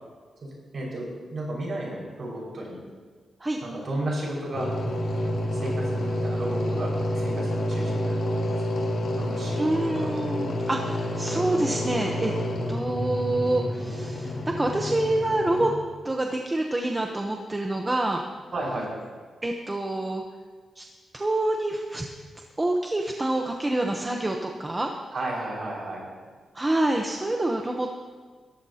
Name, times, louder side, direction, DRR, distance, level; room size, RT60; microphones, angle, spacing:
voice 1, 0.4-2.8 3.6-4.7 5.5-8.6 9.1-10.1 11.3-12.2 18.5-18.9 25.1-26.0, right 1 dB, 40° right, -4 dB, 5.3 m, -34 dB
sound 1, 4.5-15.7, left 1 dB, 70° left, 2.6 m, -29 dB
voice 2, 9.6-12.3 12.7-15.7 16.0-18.2 19.4-20.2 20.8-20.9 21.1-22.1 22.6-24.9 26.5-27.9, right 2 dB, 15° right, 2 dB, 0.8 m, -27 dB
21.5 x 13.5 x 2.8 m, 1.5 s
wide cardioid pair, 175°, 0 cm